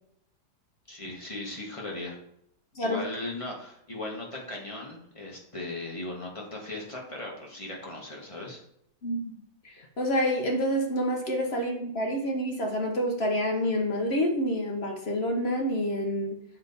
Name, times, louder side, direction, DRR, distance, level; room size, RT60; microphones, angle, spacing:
voice 1, 0.9-2.2 2.8-8.6, left 2 dB, 20° left, -2 dB, 1.2 m, -38 dB
voice 2, 9.6-16.4, equal, 50° left, 2 dB, 0.8 m, -28 dB
7.3 x 4.4 x 4.0 m, 0.72 s
omnidirectional pair, 2.0 m